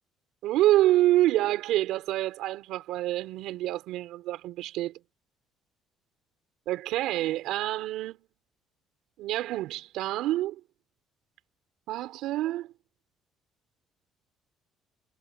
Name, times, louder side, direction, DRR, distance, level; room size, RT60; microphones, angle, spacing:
voice 1, 0.4-5.0 6.7-8.2 9.2-10.6 11.9-12.7, right 15 dB, 75° right, 4.5 m, -27 dB
cardioid pair, 155°, 0 cm